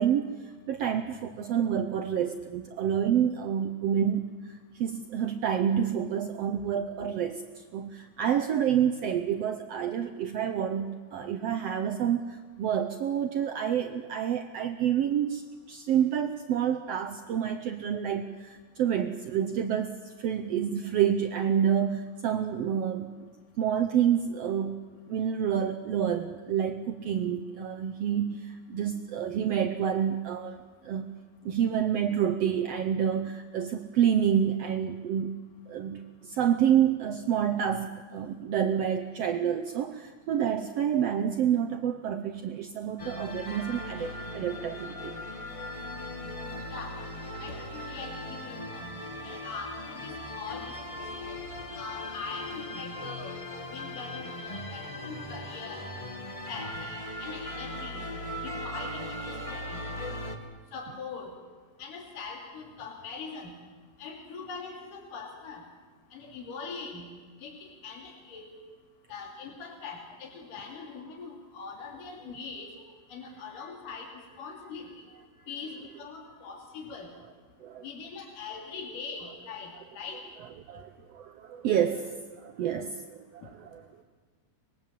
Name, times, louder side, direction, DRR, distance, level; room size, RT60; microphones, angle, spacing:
voice 1, 0.0-23.3 23.6-31.1 31.4-35.3 35.7-45.2 77.6-77.8 80.7-83.8, right 9 dB, 80° right, 8 dB, 1.4 m, -28 dB
sound 1, 43.0-60.4, left 1 dB, 30° left, 0.6 m, -39 dB
voice 2, 46.6-47.0 47.4-49.0 49.2-51.3 51.8-55.9 56.5-58.1 58.4-59.8 60.7-61.3 61.8-63.5 64.0-65.6 66.1-67.1 67.4-68.5 69.1-72.7 73.1-75.1 75.5-77.1 77.8-80.2 83.4-83.5, left 4 dB, 70° left, 1 dB, 4.3 m, -42 dB
24.5 x 20.5 x 7.6 m, 1.5 s
omnidirectional pair, 3.9 m